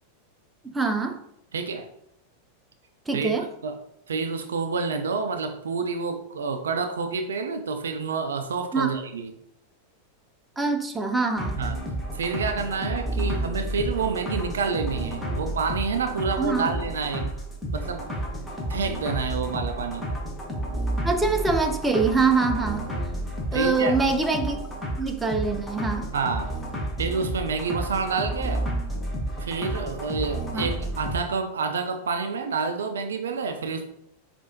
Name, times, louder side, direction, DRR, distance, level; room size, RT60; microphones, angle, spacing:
voice 1, 0.7-1.2 3.1-3.4 8.7-9.0 10.6-11.6 16.4-16.7 21.0-22.9 23.5-24.6 25.0-26.1 30.5-30.7, right 4 dB, 10° right, 4 dB, 0.5 m, -24 dB
voice 2, 1.5-1.9 3.1-3.3 3.6-3.8 4.1-9.3 11.6-11.8 12.1-17.3 17.7-18.2 18.7-20.1 23.5-24.0 26.1-26.5 27.0-28.7 29.4-33.9, right 5 dB, 65° right, 6 dB, 0.4 m, -28 dB
sound 1, 11.4-31.2, right 1 dB, 5° left, 0.9 m, -31 dB
4.7 x 2.5 x 2.8 m, 0.77 s
figure-of-eight pair, 90°, 0 cm